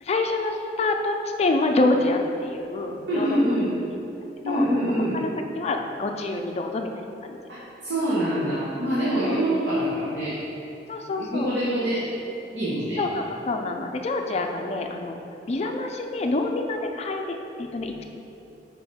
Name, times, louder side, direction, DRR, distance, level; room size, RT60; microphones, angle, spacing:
voice 1, 0.0-3.4 4.5-4.6 5.1-5.3 5.6-6.9 7.2-7.4 9.2-9.3 10.9-11.5 13.0-15.2 15.5-18.0, left 2 dB, 40° left, 3 dB, 0.4 m, -26 dB
voice 2, 3.1-3.7 4.4-5.2 7.5-10.3 11.2-12.0 12.5-13.0, equal, 90° right, -10 dB, 1.4 m, -25 dB
5.3 x 4.8 x 4.2 m, 2.9 s
head